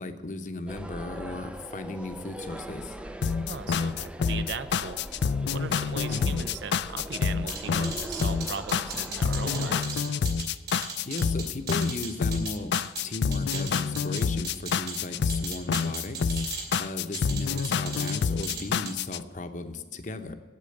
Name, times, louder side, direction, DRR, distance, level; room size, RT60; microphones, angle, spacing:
voice 1, 0.0-3.0 6.1-6.3 11.1-12.8 13.0-16.4 16.8-20.3, left 2 dB, 40° left, 8 dB, 0.8 m, -36 dB
sound 1, 0.7-9.8, right 1 dB, 5° right, 0.4 m, -41 dB
sound 2, 3.2-19.2, left 6 dB, 65° left, 0.4 m, -28 dB
voice 2, 3.4-5.2 5.5-10.1, right 5 dB, 75° right, 12 dB, 0.6 m, -38 dB
sound 3, 7.5-13.0 13.3-15.0 15.3-16.8 17.1-18.2 18.4-18.9, right 5 dB, 55° right, 2.7 m, -37 dB
8.6 x 8.5 x 7.8 m, 1.4 s
head